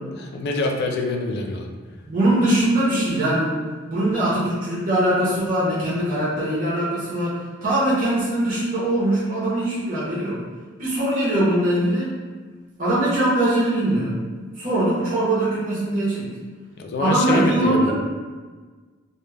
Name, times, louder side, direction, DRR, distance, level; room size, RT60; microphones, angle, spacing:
voice 1, 0.1-1.7 16.8-17.9, left 2 dB, 55° left, 2 dB, 0.3 m, -25 dB
voice 2, 2.0-3.6 3.9-10.4 10.8-12.1 12.8-14.2 14.6-16.3 17.0-17.9, right 1 dB, 45° right, -9 dB, 0.8 m, -21 dB
2.2 x 2.1 x 3.2 m, 1.4 s
head